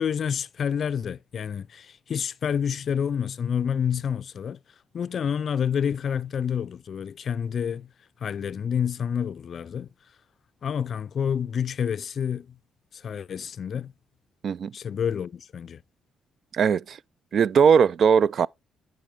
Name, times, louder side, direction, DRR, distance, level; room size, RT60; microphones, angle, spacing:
voice 1, 0.0-4.6 4.9-7.9 8.2-9.9 10.6-12.6 12.9-13.9 14.7-15.8, left 7 dB, 55° left, 0.4 m, -28 dB
voice 2, 16.5-17.0 17.3-18.5, right 7 dB, 60° right, 0.3 m, -19 dB
10.5 x 5.0 x 3.5 m
cardioid pair, 90°, 0 cm